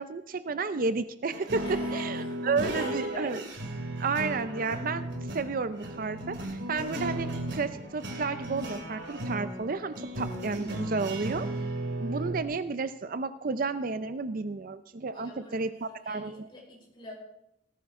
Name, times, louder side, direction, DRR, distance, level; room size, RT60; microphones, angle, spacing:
voice 1, 0.0-3.4 4.0-5.1 5.3-7.3 7.5-11.5 12.0-16.5, right 4 dB, 50° right, 12 dB, 0.5 m, -32 dB
sound 1, 1.3-12.4, right 1 dB, 70° right, 2.7 m, -35 dB
voice 2, 1.6-3.3 15.1-17.1, left 1 dB, 25° left, -3 dB, 5.2 m, -45 dB
18.5 x 14.0 x 3.7 m, 0.82 s
head